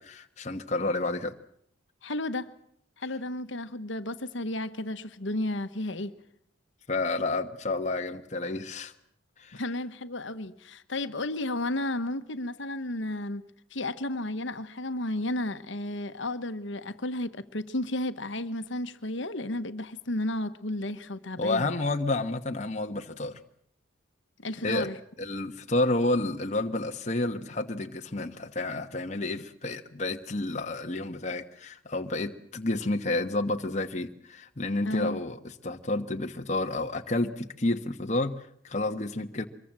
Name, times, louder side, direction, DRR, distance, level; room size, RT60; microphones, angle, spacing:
voice 1, 0.0-1.3 6.9-8.9 9.4-9.6 21.4-23.4 24.6-24.9 25.2-35.4 35.6-39.5, left 2 dB, 35° left, 1.2 m, -30 dB
voice 2, 2.0-2.5 3.0-6.1 9.5-21.7 24.4-25.0 34.8-35.2, left 1 dB, 65° left, 1.2 m, -33 dB
24.5 x 22.5 x 7.6 m
head